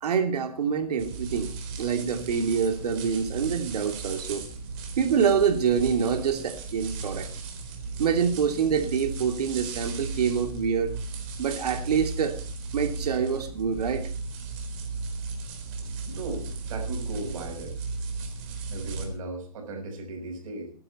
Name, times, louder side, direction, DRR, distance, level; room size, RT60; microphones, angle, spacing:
voice 1, 0.0-4.4 5.0-7.3 8.0-10.9 11.4-12.4 12.7-14.1, right 6 dB, 70° right, 2.9 m, -26 dB
sound 1, 1.0-19.0, right 4 dB, 30° right, 4.1 m, -36 dB
voice 2, 16.0-17.8 18.7-20.7, right 2 dB, 55° right, 5.9 m, -36 dB
21.5 x 11.0 x 4.3 m
hypercardioid pair, 150°, 21 cm